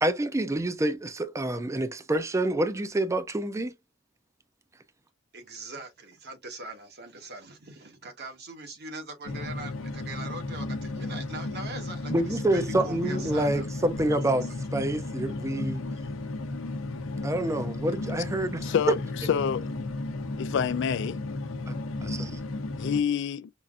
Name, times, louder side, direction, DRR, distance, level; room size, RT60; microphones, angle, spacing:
voice 1, 0.0-3.7 12.1-14.4 14.7-15.8 17.2-18.7 21.7-22.4, right 1 dB, 15° right, 0.4 m, -27 dB
voice 2, 5.3-13.7 14.1-14.6, right 3 dB, 50° right, 1.1 m, -42 dB
sound 1, 9.3-23.0, left 2 dB, 75° left, 0.7 m, -34 dB
voice 3, 18.6-19.0 19.3-19.7 20.4-21.2 22.8-23.5, left 7 dB, 60° left, 0.3 m, -27 dB
5.3 x 2.5 x 2.4 m
head